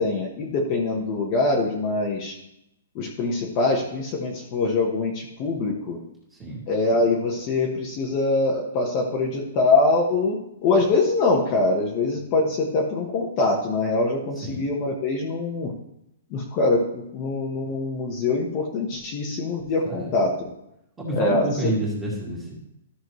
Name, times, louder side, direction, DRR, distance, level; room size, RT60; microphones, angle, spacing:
voice 1, 0.0-2.3 2.9-6.0 6.7-15.7 16.3-20.5 21.1-21.7, left 3 dB, 30° left, -1 dB, 1.2 m, -23 dB
voice 2, 6.3-6.7 14.4-14.8 19.8-20.2 21.0-22.6, right 1 dB, 10° right, -5 dB, 2.3 m, -29 dB
13.5 x 6.3 x 3.1 m, 0.81 s
hypercardioid pair, 165°, 0 cm